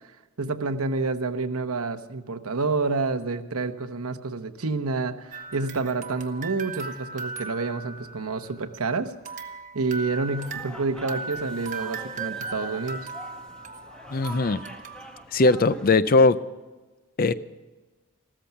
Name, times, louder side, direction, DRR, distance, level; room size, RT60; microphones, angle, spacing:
voice 1, 0.4-9.5 9.7-13.1, right 3 dB, 75° right, 1.0 m, -28 dB
sound 1, 5.3-8.8 9.3-15.2, right 4 dB, 35° right, 1.1 m, -38 dB
sound 2, 10.1-15.9, equal, 5° left, 1.0 m, -44 dB
voice 2, 14.1-14.6 15.3-16.4 17.2-17.3, left 3 dB, 40° left, 0.5 m, -19 dB
15.0 x 13.5 x 5.8 m
head